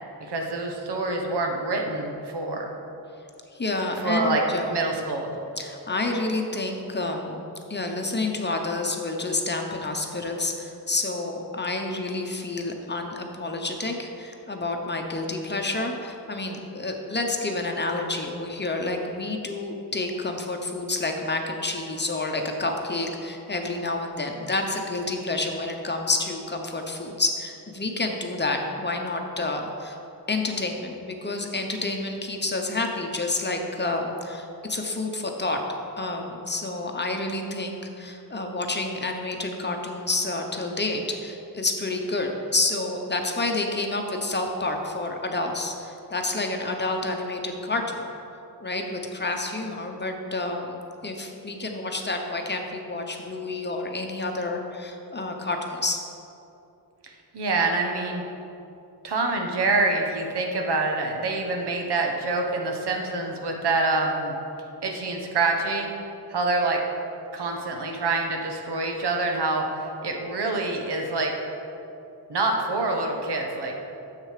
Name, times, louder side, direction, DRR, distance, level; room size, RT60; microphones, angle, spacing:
voice 1, 0.3-2.6 4.0-4.4 4.7-5.3 57.0-58.2 59.0-64.3 64.8-65.9 66.3-66.8 67.3-71.3 72.3-73.9, right 3 dB, 80° right, 2 dB, 1.3 m, -26 dB
voice 2, 3.5-4.7 5.6-7.3 7.7-30.0 30.3-35.6 36.0-48.1 48.6-50.7 51.0-56.0, left 2 dB, 25° left, 3 dB, 0.8 m, -29 dB
9.8 x 7.5 x 5.0 m, 2.8 s
wide cardioid pair, 145°, 40 cm